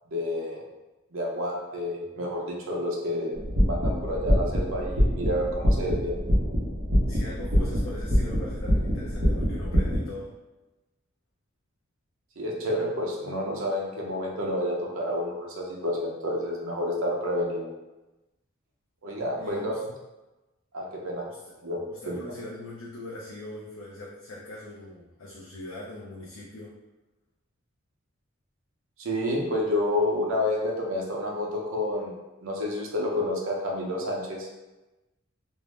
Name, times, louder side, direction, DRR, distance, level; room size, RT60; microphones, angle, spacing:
voice 1, 0.1-0.6 1.1-3.3 3.6-6.1 12.4-17.7 19.0-19.8 20.7-21.2 21.6-22.2 29.0-32.1 32.4-34.5, left 1 dB, 80° right, -1 dB, 0.6 m, -29 dB
sound 1, 3.3-10.0, equal, 45° right, 0.8 m, -25 dB
voice 2, 7.1-10.3 19.4-19.8 21.3-21.4 21.9-26.7, left 1 dB, 70° left, -6 dB, 0.5 m, -41 dB
2.6 x 2.0 x 3.2 m, 1.1 s
head